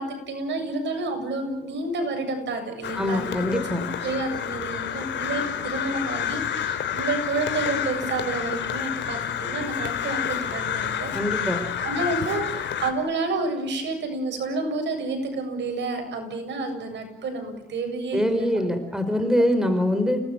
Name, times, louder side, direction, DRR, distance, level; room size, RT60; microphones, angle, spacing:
voice 1, 0.0-11.1 11.4-11.5 11.8-18.5, right 3 dB, 65° right, 6 dB, 7.6 m, -30 dB
Crow, 2.8-12.9, left 9 dB, 65° left, 3.4 m, -29 dB
voice 2, 3.0-3.8 11.1-11.6 18.1-20.2, left 1 dB, 5° right, 8 dB, 4.7 m, -23 dB
29.5 x 19.0 x 9.1 m, 0.87 s
cardioid pair, 90°, 20 cm